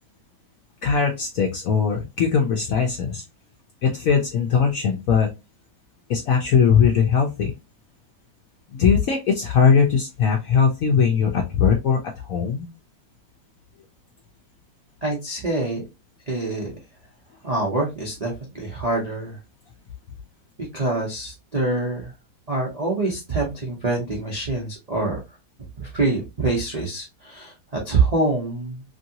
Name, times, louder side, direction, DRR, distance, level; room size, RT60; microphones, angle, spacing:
voice 1, 0.8-3.2 3.8-5.3 6.1-7.5 8.7-12.0 12.3-12.7, left 6 dB, 70° left, 1 dB, 0.8 m, -20 dB
voice 2, 15.0-15.8 16.3-16.7 17.4-19.4 20.7-22.1 22.5-25.2 25.8-28.8, right 3 dB, 60° right, -3 dB, 0.4 m, -25 dB
3.0 x 2.7 x 2.7 m, 0.23 s
omnidirectional pair, 2.0 m